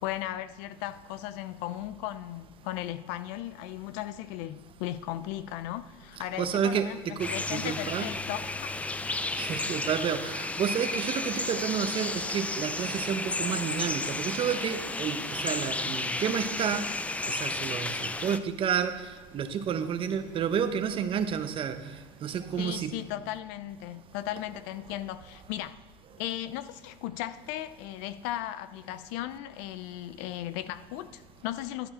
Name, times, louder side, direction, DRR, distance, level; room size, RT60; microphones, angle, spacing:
voice 1, 0.0-8.7 22.6-25.7 26.2-31.9, left 13 dB, 75° left, 0.6 m, -36 dB
voice 2, 6.4-8.1 9.3-16.9 17.3-21.8 22.2-23.0, right 7 dB, 40° right, 0.9 m, -30 dB
sound 1, 7.2-18.4, left 2 dB, 10° left, 0.4 m, -33 dB
11.5 x 8.7 x 4.3 m
supercardioid pair, 110°, 14 cm